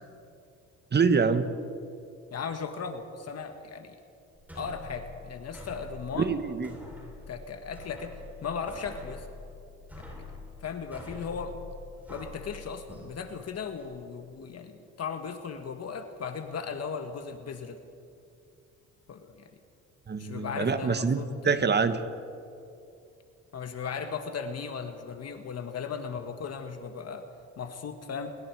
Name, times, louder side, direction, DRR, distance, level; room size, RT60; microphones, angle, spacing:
voice 1, 0.9-1.6 6.2-6.7 20.1-22.0, right 5 dB, 35° right, 10 dB, 1.4 m, -25 dB
voice 2, 2.3-4.0 4.5-6.3 7.3-9.3 10.1-10.2 10.6-11.6 12.1-17.8 19.1-19.5 20.2-21.6 23.5-27.3 27.6-28.4, left 6 dB, 55° left, 7 dB, 1.6 m, -37 dB
sound 1, 4.3-13.8, left 3 dB, 5° right, 7.8 m, -46 dB
30.0 x 22.5 x 4.8 m, 2.6 s
cardioid pair, 90°, 30 cm